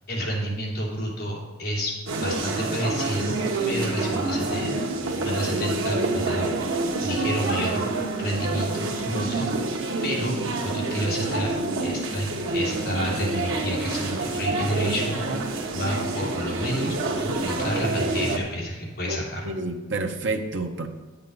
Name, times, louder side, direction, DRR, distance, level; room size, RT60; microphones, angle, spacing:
voice 1, 0.1-1.9 2.2-3.4 3.7-4.7 5.2-6.5 7.0-9.6 10.0-10.4 10.6-11.5 11.8-15.5 15.7-19.5, equal, 50° left, -4 dB, 3.0 m, -30 dB
sound 1, 2.1-18.4, right 2 dB, 85° right, 1.2 m, -27 dB
voice 2, 19.4-20.9, right 2 dB, 65° right, 4 dB, 0.9 m, -29 dB
9.4 x 8.4 x 4.0 m, 1.2 s
head